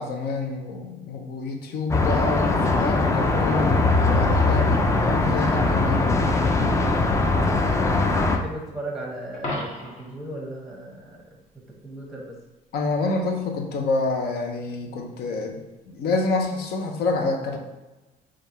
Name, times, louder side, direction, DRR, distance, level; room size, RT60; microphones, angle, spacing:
voice 1, 0.0-6.1 12.7-17.6, left 3 dB, 70° left, 3 dB, 0.7 m, -27 dB
sound 1, 1.9-8.4, left 3 dB, 15° left, 0.4 m, -21 dB
voice 2, 6.8-11.2 11.8-12.4, right 1 dB, ahead, -1 dB, 1.0 m, -37 dB
Coin (dropping), 9.3-10.2 16.3-16.4, left 1 dB, 40° left, 1.1 m, -33 dB
3.4 x 2.5 x 4.1 m, 1.1 s
cardioid pair, 110°, 17 cm